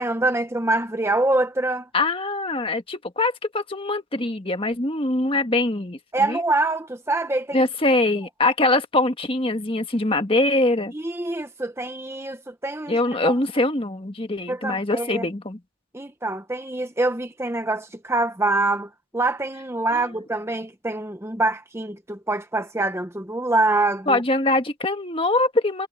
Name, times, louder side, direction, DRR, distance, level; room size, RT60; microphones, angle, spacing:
voice 1, 0.0-1.9 6.1-7.6 10.9-13.0 13.2-13.3 14.5-15.2 15.9-24.2, right 2 dB, 10° right, 0.9 m, -25 dB
voice 2, 1.9-6.4 7.5-10.9 12.9-15.6 19.9-20.0 24.1-25.9, left 2 dB, 25° left, 1.5 m, -23 dB
head